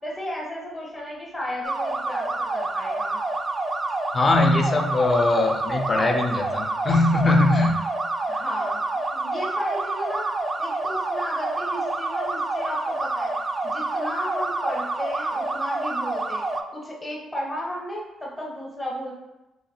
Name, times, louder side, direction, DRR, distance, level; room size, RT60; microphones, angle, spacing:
voice 1, 0.0-3.2 8.3-8.8 9.1-10.3 10.6-13.3 13.6-16.4 16.7-19.1, equal, 15° left, -3 dB, 0.9 m, -33 dB
police siren, 1.6-16.6, right 2 dB, 30° right, 0.3 m, -28 dB
voice 2, 4.1-7.8, left 2 dB, 35° left, 3 dB, 0.5 m, -21 dB
3.1 x 3.0 x 2.7 m, 0.98 s
cardioid pair, 90°, 0 cm